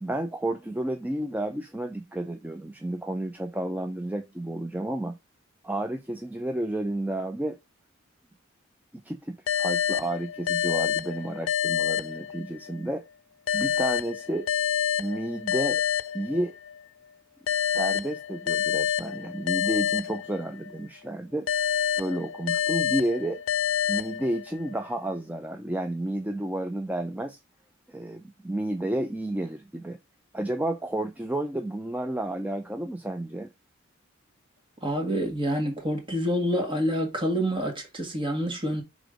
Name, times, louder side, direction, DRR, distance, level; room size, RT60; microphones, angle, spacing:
voice 1, 0.0-5.2 5.6-7.6 8.9-13.1 13.5-14.5 15.0-15.8 16.1-16.6 17.7-21.5 22.0-23.4 23.9-27.4 27.9-30.0 30.3-33.5, right 1 dB, 10° right, 0.4 m, -31 dB
sound 1, 9.5-12.8 13.5-16.8 17.5-20.8 21.5-24.8, left 8 dB, 90° left, 0.4 m, -28 dB
voice 2, 34.8-38.8, equal, 25° right, 1.7 m, -27 dB
5.3 x 3.7 x 4.9 m
head